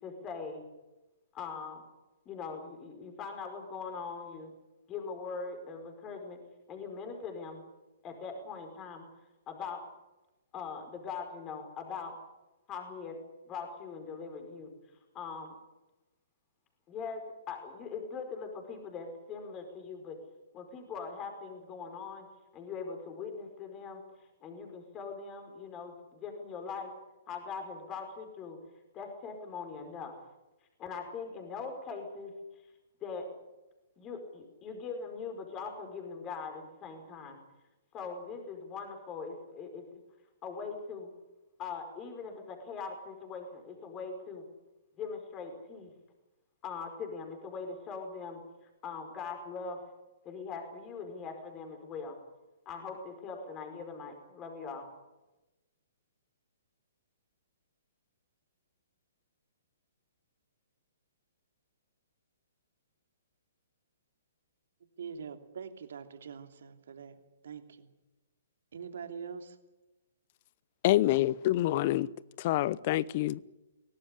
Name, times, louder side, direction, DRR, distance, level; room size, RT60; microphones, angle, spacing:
voice 1, 0.0-0.6 1.3-1.8 2.2-4.5 4.9-6.4 6.7-7.6 8.0-9.0 9.5-9.8 10.5-12.1 12.7-13.2 13.5-14.7 15.1-15.5 16.9-20.2 20.5-22.3 22.5-24.0 24.4-26.9 27.3-28.6 28.9-30.1 30.8-32.3 33.0-33.3 34.0-37.4 37.9-39.8 40.4-41.1 41.6-44.4 45.0-45.9 46.6-48.4 48.8-49.8 50.2-52.2 52.6-54.9, left 5 dB, 25° left, 5.1 m, -41 dB
voice 2, 65.0-67.2 67.4-67.9 68.7-69.6, right 6 dB, 65° right, 2.9 m, -43 dB
voice 3, 70.8-72.1 72.4-73.4, left 15 dB, 45° left, 0.8 m, -27 dB
23.5 x 18.0 x 10.0 m
hypercardioid pair, 125°, 0 cm